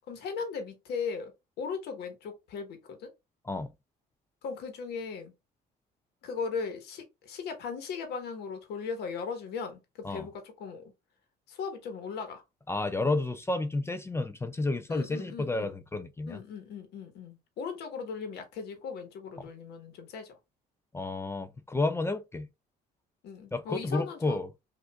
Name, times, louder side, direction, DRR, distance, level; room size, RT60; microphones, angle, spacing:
voice 1, 0.1-1.3 1.6-3.1 4.4-5.3 6.2-9.8 10.0-10.9 11.5-12.4 14.9-15.8 16.3-20.4 23.2-24.4, left 5 dB, 75° left, 1.2 m, -38 dB
voice 2, 12.7-16.4 20.9-22.5 23.5-24.5, left 2 dB, 15° left, 0.4 m, -31 dB
6.1 x 2.6 x 2.3 m
cardioid pair, 110°, 17 cm